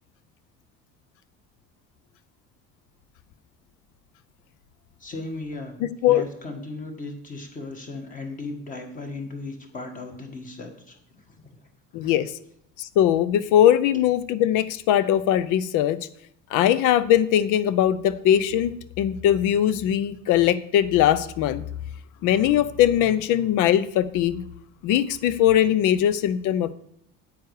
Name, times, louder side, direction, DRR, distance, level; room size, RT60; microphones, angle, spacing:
voice 1, 5.0-11.4 12.0-12.3, left 3 dB, 25° left, 4 dB, 1.5 m, -37 dB
voice 2, 5.8-6.2 11.9-12.3 12.8-16.0 16.5-18.7 19.0-21.6 22.2-24.4 24.8-26.7, left 11 dB, 75° left, 16 dB, 0.7 m, -20 dB
9.5 x 8.2 x 4.8 m, 0.71 s
cardioid pair, 175°, 31 cm